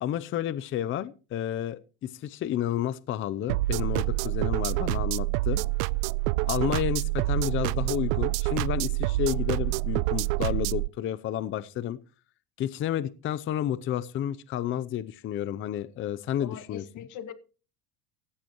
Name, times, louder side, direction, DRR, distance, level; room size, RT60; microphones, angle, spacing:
voice 1, 0.0-5.6 6.5-12.0 12.6-16.8, left 11 dB, 30° left, 0.6 m, -31 dB
sound 1, 3.5-10.9, right 20 dB, 90° right, 0.6 m, -27 dB
voice 2, 16.4-17.3, left 9 dB, 45° left, 2.0 m, -41 dB
17.0 x 14.0 x 3.0 m
cardioid pair, 150°, 40 cm